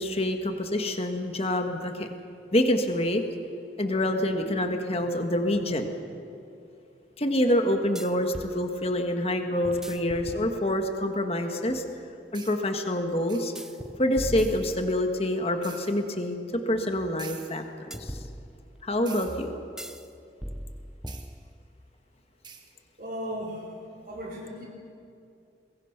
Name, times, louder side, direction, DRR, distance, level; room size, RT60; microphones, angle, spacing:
voice 1, 0.0-2.1 2.5-3.2 3.8-5.9 7.2-11.8 12.3-13.5 14.0-16.4 16.7-18.2 18.8-19.5, left 1 dB, 35° left, 5 dB, 1.6 m, -26 dB
sound 1, 5.5-5.6 8.0-8.6 9.6-11.0 13.6-15.3 17.9-18.9 19.8-20.1 20.4-21.8, equal, 5° right, 0.6 m, -39 dB
sound 2, 12.3-12.6 13.3-13.6 14.4-14.7 15.6-15.9 17.2-17.6 19.1-19.5 21.1-21.3 22.4-22.7, right 6 dB, 25° right, 1.6 m, -45 dB
voice 2, 23.0-23.8 24.1-24.7, equal, 50° right, -3 dB, 4.7 m, -36 dB
23.0 x 21.5 x 6.0 m, 2.6 s
head